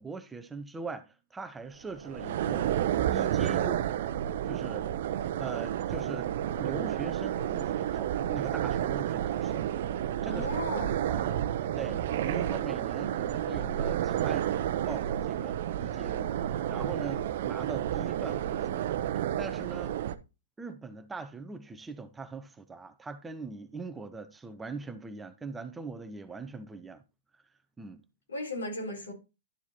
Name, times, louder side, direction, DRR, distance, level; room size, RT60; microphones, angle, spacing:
voice 1, 0.0-2.7 3.1-3.9 4.5-4.9 5.4-9.7 10.2-10.5 11.1-11.4 11.8-18.8 19.4-20.0 20.6-27.0 27.8-28.0, right 4 dB, 10° right, 0.7 m, -41 dB
sound 1, 1.9-20.2, right 11 dB, 60° right, 0.7 m, -31 dB
voice 2, 10.3-11.0 28.3-29.1, left 2 dB, 90° left, 4.2 m, -36 dB
11.5 x 4.6 x 4.2 m
hypercardioid pair, 135°, 0 cm